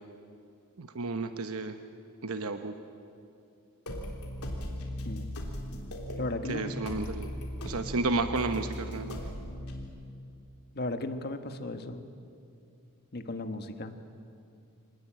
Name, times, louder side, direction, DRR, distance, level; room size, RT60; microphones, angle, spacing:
voice 1, 0.8-1.8 2.2-2.8 6.5-7.3 7.6-9.2, right 3 dB, 70° right, 8 dB, 1.0 m, -32 dB
sound 1, 3.9-9.8, left 1 dB, 80° left, 3.5 m, -38 dB
voice 2, 6.2-6.8 10.7-12.1 13.1-14.0, left 2 dB, 45° left, 8 dB, 1.4 m, -36 dB
25.5 x 19.5 x 9.0 m, 2.5 s
head